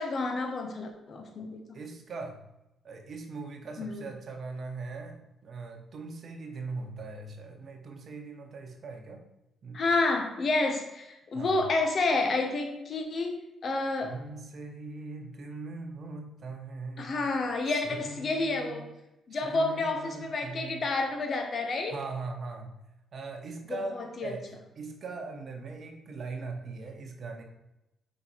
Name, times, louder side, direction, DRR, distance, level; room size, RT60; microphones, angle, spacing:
voice 1, 0.0-1.6 3.8-4.0 9.7-13.4 13.6-14.1 17.0-18.9 19.3-21.9 23.7-24.4, left 3 dB, 50° left, 4 dB, 1.1 m, -29 dB
voice 2, 1.7-2.4 2.8-9.2 9.6-9.8 11.3-11.7 14.0-17.2 17.7-18.9 19.3-20.9 21.8-22.8 23.1-27.4, right 3 dB, 55° right, 3 dB, 1.1 m, -40 dB
5.5 x 3.8 x 4.5 m, 0.91 s
supercardioid pair, 65°, 0 cm